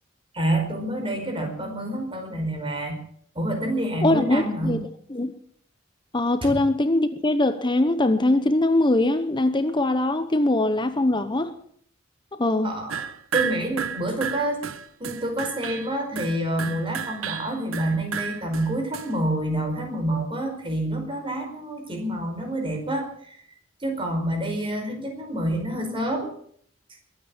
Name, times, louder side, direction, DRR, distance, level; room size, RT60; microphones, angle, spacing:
voice 1, 0.3-2.9 3.3-4.8 6.5-6.6 12.6-13.1 13.3-14.6 15.0-23.4 23.8-26.3, right 1 dB, 25° right, 4.9 m, -27 dB
voice 2, 4.0-4.8 5.1-5.3 6.1-11.5 12.3-12.7, left 2 dB, 25° left, 0.8 m, -22 dB
sound 1, 12.9-19.1, right 7 dB, 80° right, 1.1 m, -32 dB
22.0 x 9.0 x 7.1 m
head